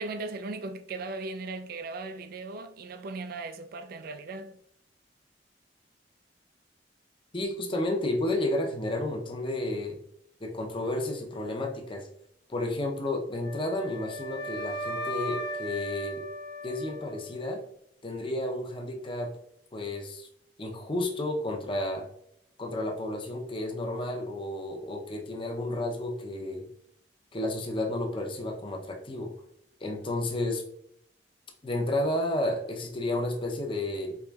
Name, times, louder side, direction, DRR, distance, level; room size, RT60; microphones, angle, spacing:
voice 1, 0.0-4.6, right 3 dB, 55° right, 0.4 m, -37 dB
voice 2, 7.3-10.0 10.4-12.1 12.5-16.2 16.6-17.6 18.0-19.3 19.7-20.3 20.6-22.1 22.6-26.7 27.3-29.3 29.8-30.6 31.6-34.2, left 1 dB, 30° left, 0.6 m, -31 dB
Wind instrument woodwind instrument, 13.4-17.5, equal, 70° left, 0.7 m, -37 dB
4.7 x 3.0 x 2.3 m
head